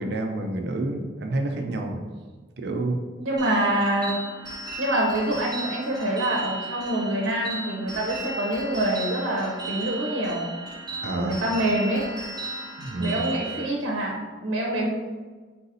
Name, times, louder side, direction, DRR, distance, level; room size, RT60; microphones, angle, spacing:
voice 1, 0.0-2.0 2.6-3.0 11.0-11.4 12.8-13.3, right 2 dB, 55° right, 3 dB, 0.4 m, -28 dB
voice 2, 3.2-4.1 4.8-10.5 11.1-12.1 13.0-14.9, right 1 dB, 85° right, -3 dB, 0.7 m, -26 dB
sound 1, 3.4-13.7, right 2 dB, 20° right, 0.7 m, -36 dB
3.9 x 2.7 x 4.0 m, 1.4 s
head